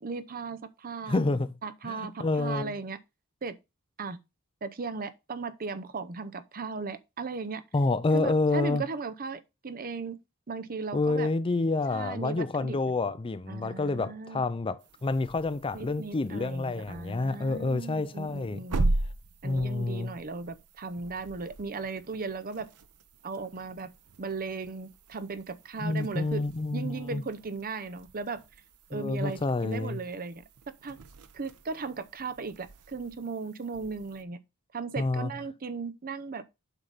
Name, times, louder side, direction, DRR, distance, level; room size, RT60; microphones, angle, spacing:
voice 1, 0.0-1.2 1.6-3.0 3.4-3.5 4.0-4.2 4.6-7.6 8.1-10.2 10.5-11.3 11.9-12.8 13.5-14.4 15.7-18.9 19.4-22.7 23.2-23.9 24.2-26.4 26.7-28.4 28.9-30.4 30.8-31.0 31.3-34.4 34.7-36.4, right 4 dB, 40° right, 0.7 m, -37 dB
voice 2, 1.1-1.5 1.8-2.7 7.7-8.8 10.9-18.6 19.4-20.1 25.8-27.2 28.9-30.0 35.0-35.3, left 3 dB, 25° left, 0.4 m, -28 dB
sound 1, 14.8-34.2, right 2 dB, 90° right, 0.8 m, -39 dB
8.1 x 5.7 x 4.0 m
head